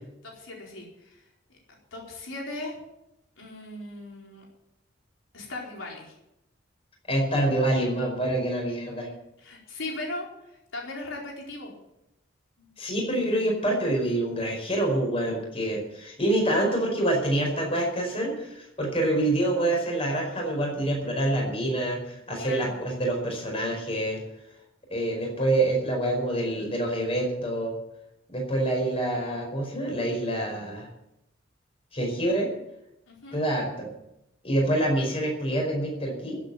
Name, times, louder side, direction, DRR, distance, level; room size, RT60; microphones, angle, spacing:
voice 1, 0.2-1.2 1.9-2.7 3.4-4.4 5.3-6.2 9.4-11.7 12.6-12.7 22.4-22.8 33.1-33.4, left 2 dB, 85° left, -2 dB, 4.4 m, -38 dB
voice 2, 7.1-9.1 12.8-24.2 24.9-27.7 28.3-30.9 31.9-32.5 33.3-33.9 34.4-36.4, right 1 dB, 30° left, 1 dB, 5.0 m, -26 dB
15.0 x 8.4 x 9.2 m, 0.86 s
head